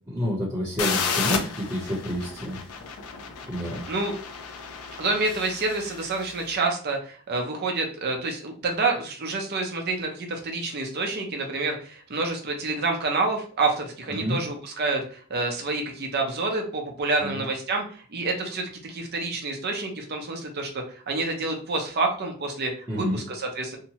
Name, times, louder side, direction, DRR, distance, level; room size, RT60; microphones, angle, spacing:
voice 1, 0.1-2.6 3.5-3.8 14.2-14.4 17.2-17.4 22.9-23.2, equal, 15° right, -10 dB, 0.7 m, -29 dB
sound 1, 0.8-6.5, left 6 dB, 80° left, 0.4 m, -32 dB
voice 2, 5.0-23.8, right 3 dB, 45° right, 2 dB, 0.6 m, -28 dB
2.8 x 2.1 x 2.8 m, 0.42 s
head